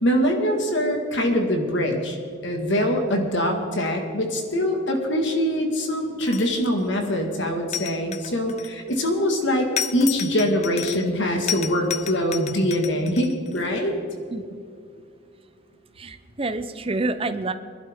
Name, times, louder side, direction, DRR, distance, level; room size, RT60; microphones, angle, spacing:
voice 1, 0.0-2.2 2.4-13.9, equal, 55° left, 3 dB, 1.8 m, -23 dB
sound 1, 6.2-6.8 7.7-9.0 9.8-11.2 11.5-13.6, left 10 dB, 30° left, 0.3 m, -32 dB
voice 2, 14.3-14.6 16.0-17.5, right 2 dB, 25° right, 10 dB, 0.6 m, -28 dB
22.0 x 12.0 x 3.6 m, 2.3 s
head